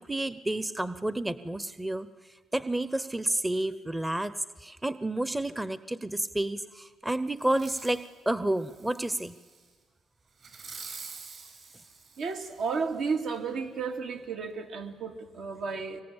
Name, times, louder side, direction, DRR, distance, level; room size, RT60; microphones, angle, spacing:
voice 1, 0.1-2.1 2.5-9.4, right 1 dB, 10° right, 14 dB, 0.8 m, -30 dB
Fireworks, 7.4-8.0 8.6-9.6 10.4-12.8 13.3-13.4, right 4 dB, 55° right, 8.0 m, -46 dB
voice 2, 12.2-16.0, right 5 dB, 75° right, 2 dB, 2.6 m, -33 dB
25.0 x 24.0 x 8.8 m, 1.5 s
cardioid pair, 90°, 0 cm